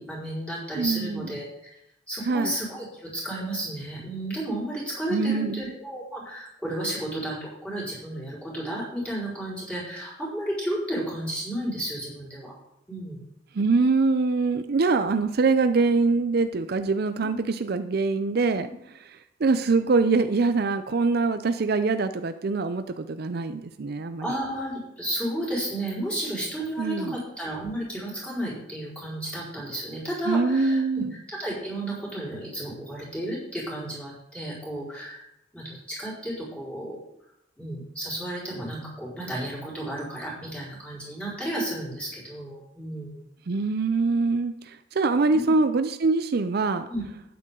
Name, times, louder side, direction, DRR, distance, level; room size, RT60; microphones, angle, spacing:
voice 1, 0.0-1.5 2.1-12.5 12.9-13.2 17.2-17.4 18.6-18.7 24.2-31.0 31.4-35.2 35.5-37.0 37.6-43.2 45.3-45.5 46.9-47.0, right 1 dB, 5° left, -7 dB, 4.5 m, -32 dB
voice 2, 0.8-1.3 2.2-2.6 5.1-5.7 13.5-18.7 19.1-24.4 26.8-27.2 30.3-31.1 43.5-46.9, right 3 dB, 55° right, 10 dB, 0.5 m, -24 dB
11.5 x 9.4 x 3.8 m, 0.82 s
head